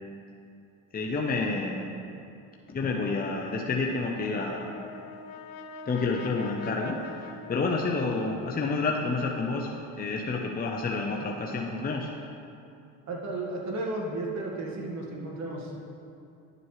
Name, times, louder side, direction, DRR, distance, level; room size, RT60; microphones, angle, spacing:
voice 1, 0.9-1.9 2.7-4.7 5.9-9.7 10.0-12.1, left 3 dB, 25° left, 0 dB, 0.8 m, -29 dB
Brass instrument, 4.1-8.6, left 4 dB, 60° left, 0.7 m, -44 dB
voice 2, 13.1-16.0, right 2 dB, 50° right, -1 dB, 1.8 m, -34 dB
11.0 x 7.8 x 3.2 m, 2.6 s
supercardioid pair, 80°, 37 cm